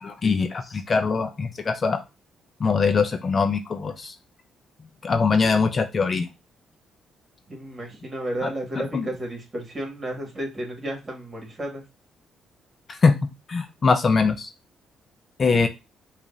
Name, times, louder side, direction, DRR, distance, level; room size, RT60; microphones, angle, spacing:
voice 1, 0.0-2.0 2.6-4.2 5.0-6.3 8.4-9.1 12.9-13.2 13.5-14.5 15.4-15.7, left 4 dB, 40° left, 7 dB, 0.5 m, -22 dB
voice 2, 7.5-11.8, right 1 dB, 30° right, 1 dB, 1.9 m, -32 dB
5.0 x 2.5 x 2.6 m, 0.26 s
cardioid pair, 90°, 0 cm